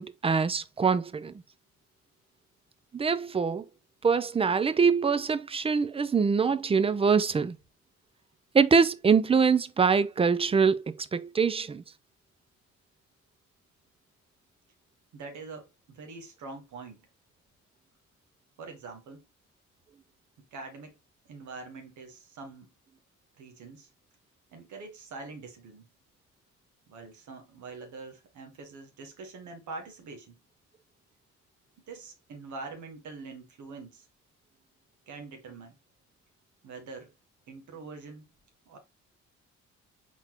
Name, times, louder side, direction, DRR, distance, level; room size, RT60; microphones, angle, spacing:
voice 1, 0.0-1.3 2.9-3.7 4.0-7.6 8.5-11.8, right 5 dB, 20° right, 0.4 m, -24 dB
voice 2, 15.1-17.1 18.6-19.3 20.4-20.9 21.3-22.7 23.4-23.9 24.5-25.9 26.9-30.4 31.9-34.1 35.1-35.8 36.6-37.1 37.5-38.3 38.6-38.8, right 3 dB, 75° right, 1.4 m, -44 dB
4.3 x 3.9 x 2.9 m
cardioid pair, 90°, 30 cm